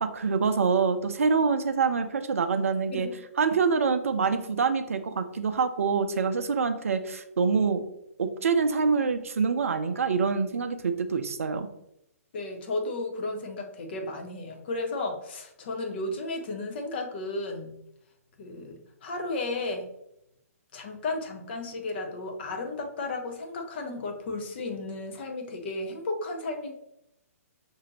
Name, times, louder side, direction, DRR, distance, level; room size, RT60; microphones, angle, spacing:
voice 1, 0.0-3.1 3.4-7.8 8.2-11.7, right 5 dB, 60° right, 8 dB, 0.5 m, -25 dB
voice 2, 12.3-17.7 18.4-19.9 20.7-26.7, left 2 dB, 45° left, 3 dB, 0.8 m, -34 dB
5.9 x 2.7 x 3.0 m, 0.80 s
figure-of-eight pair, 125°, 8 cm